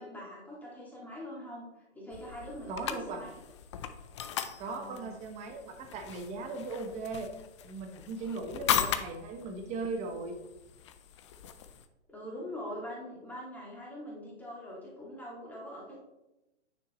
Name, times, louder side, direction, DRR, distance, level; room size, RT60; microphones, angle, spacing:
voice 1, 0.0-1.6 1.9-3.3 4.7-5.1 12.1-16.0, equal, 5° left, -5 dB, 2.3 m, -43 dB
sound 1, 2.1-11.8, left 9 dB, 25° left, 0.4 m, -38 dB
voice 2, 2.7-3.2 4.6-7.3 7.6-10.4, right 3 dB, 20° right, 5 dB, 1.0 m, -38 dB
9.4 x 6.6 x 3.1 m, 0.97 s
hypercardioid pair, 130°, 35 cm